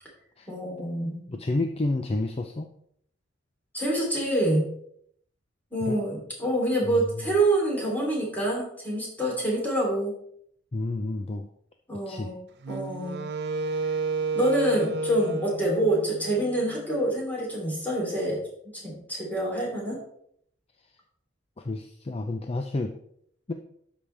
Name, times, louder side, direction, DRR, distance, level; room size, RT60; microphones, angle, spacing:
voice 1, 0.5-1.2 3.7-4.6 5.7-10.1 11.9-12.4 12.7-13.2 14.3-18.4 18.7-20.0, right 1 dB, 10° left, -3 dB, 3.1 m, -26 dB
voice 2, 1.3-2.7 5.8-6.0 6.8-7.3 10.7-11.5 12.1-12.3 21.6-22.9 23.5-23.6, left 2 dB, 30° left, 5 dB, 0.5 m, -30 dB
Wind instrument woodwind instrument, 12.6-16.9, right 4 dB, 60° right, 0.5 m, -31 dB
12.5 x 5.2 x 3.3 m, 0.68 s
head